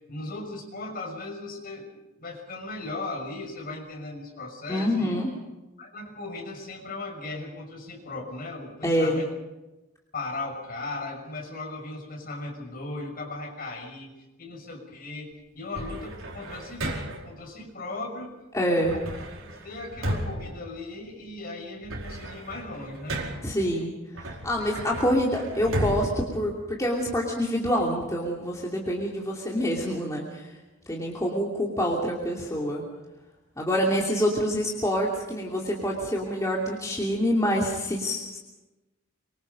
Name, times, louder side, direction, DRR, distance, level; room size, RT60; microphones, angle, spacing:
voice 1, 0.1-5.1 5.8-9.3 10.1-14.1 14.4-18.4 18.7-19.0 19.4-23.2, left 2 dB, 45° left, 1 dB, 6.1 m, -37 dB
voice 2, 4.7-5.3 8.8-9.2 18.5-18.9 23.4-23.9 24.1-30.5 30.9-32.8 33.6-38.4, equal, 15° left, -2 dB, 2.8 m, -26 dB
sound 1, 15.7-17.4 18.8-21.3 21.7-23.6 24.1-27.2, right 1 dB, 80° right, 4.7 m, -34 dB
25.5 x 23.5 x 5.3 m, 1.1 s
head